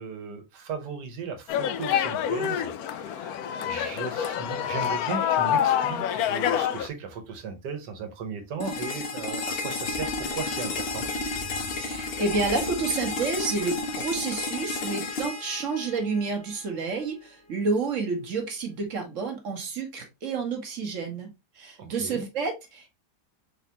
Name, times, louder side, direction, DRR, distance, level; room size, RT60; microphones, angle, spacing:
voice 1, 0.0-3.4 3.7-11.1 22.0-22.3, right 5 dB, 85° right, 1.6 m, -36 dB
sound 1, 1.5-6.9, left 9 dB, 70° left, 1.0 m, -27 dB
sound 2, 8.6-16.6, left 3 dB, 55° left, 0.7 m, -32 dB
sound 3, 9.8-14.9, left 2 dB, 40° left, 1.4 m, -45 dB
voice 2, 11.8-21.3 21.5-22.9, right 4 dB, 55° right, 1.3 m, -29 dB
4.3 x 3.6 x 2.8 m
omnidirectional pair, 1.8 m